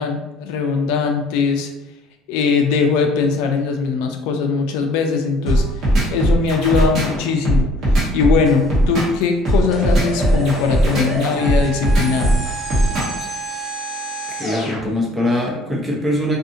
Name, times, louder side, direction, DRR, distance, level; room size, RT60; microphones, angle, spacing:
voice 1, 0.0-1.7 2.3-5.6 6.1-7.7 8.1-12.3, left 5 dB, 75° left, 4 dB, 0.4 m, -20 dB
sound 1, 5.5-13.2, right 1 dB, 45° right, 1.1 m, -17 dB
sound 2, 9.7-14.8, right 2 dB, 20° left, 0.7 m, -29 dB
voice 2, 14.3-16.4, left 1 dB, 15° right, -3 dB, 0.6 m, -22 dB
2.6 x 2.4 x 2.6 m, 0.98 s
cardioid pair, 150°, 0 cm